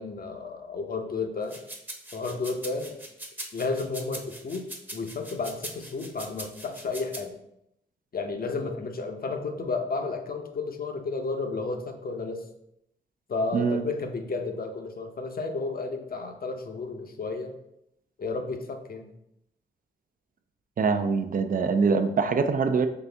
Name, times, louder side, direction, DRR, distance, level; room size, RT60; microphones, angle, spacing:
voice 1, 0.0-1.6 2.1-3.0 3.5-4.7 4.9-7.3 8.1-12.4 13.3-17.5 18.2-19.1, left 3 dB, 50° left, 5 dB, 0.7 m, -32 dB
sound 1, 1.4-7.2, right 1 dB, 10° right, 0.8 m, -41 dB
voice 2, 13.5-13.8 20.8-22.9, right 5 dB, 45° right, 8 dB, 0.5 m, -24 dB
4.1 x 3.3 x 3.4 m, 0.79 s
cardioid pair, 55°, 19 cm